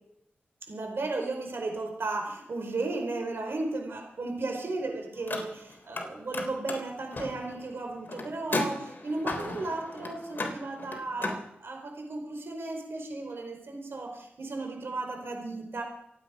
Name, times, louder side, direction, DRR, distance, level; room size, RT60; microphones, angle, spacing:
voice 1, 0.7-15.8, right 2 dB, 70° right, 2 dB, 4.7 m, -35 dB
Car, 5.1-6.0 6.3-11.4, left 2 dB, 50° left, 3.5 m, -35 dB
27.5 x 9.2 x 5.2 m, 0.75 s
cardioid pair, 55°, 4 cm